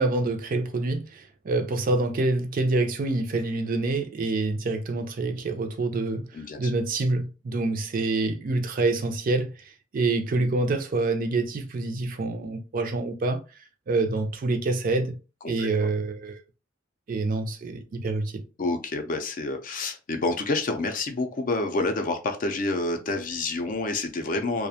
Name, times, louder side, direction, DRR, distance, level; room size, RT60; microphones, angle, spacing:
voice 1, 0.0-6.3 6.6-9.5 9.9-13.4 13.9-15.2 15.4-16.4 17.1-18.4, right 3 dB, 45° right, 0.4 m, -26 dB
voice 2, 6.3-6.7 15.4-15.7 18.6-24.7, left 2 dB, 45° left, 0.4 m, -28 dB
2.4 x 2.1 x 2.7 m
head